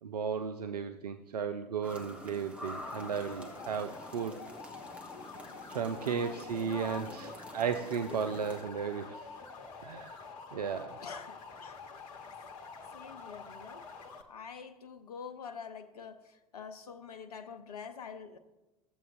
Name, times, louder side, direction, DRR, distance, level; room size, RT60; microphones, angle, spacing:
voice 1, 0.0-4.4 5.7-9.3 9.8-10.2 10.5-11.0, right 6 dB, 80° right, 8 dB, 0.4 m, -35 dB
sound 1, 1.8-8.6, left 1 dB, 5° right, 1.2 m, -48 dB
sound 2, 2.8-14.2, left 4 dB, 55° left, 1.0 m, -47 dB
voice 2, 6.1-7.4 8.1-8.2 11.0-11.8 12.9-13.9 14.3-18.4, left 6 dB, 75° left, 10 dB, 0.7 m, -46 dB
14.5 x 7.6 x 2.5 m, 1.1 s
figure-of-eight pair, 80°, 20 cm